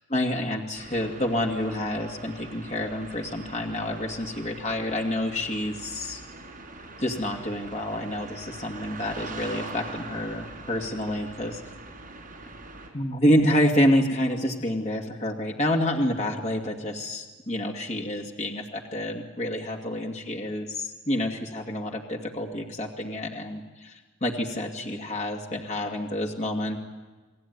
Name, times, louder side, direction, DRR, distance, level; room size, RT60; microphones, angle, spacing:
voice 1, 0.1-6.2 7.0-11.6 12.9-26.8, left 1 dB, 35° left, 1 dB, 2.3 m, -28 dB
sound 1, 0.7-12.9, right 3 dB, 40° right, 5.0 m, -43 dB
29.5 x 19.0 x 9.5 m, 1.3 s
head